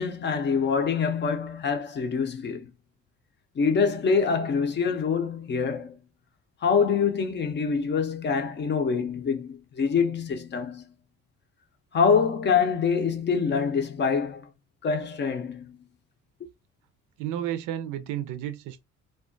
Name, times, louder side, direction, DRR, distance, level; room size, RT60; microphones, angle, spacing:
voice 1, 0.0-2.7 3.6-6.0 6.6-10.9 11.9-14.5 14.8-15.9, left 5 dB, 35° left, 0.5 m, -25 dB
voice 2, 17.2-18.8, right 11 dB, 80° right, 0.5 m, -32 dB
2.3 x 2.2 x 2.5 m
cardioid pair, 100°, 30 cm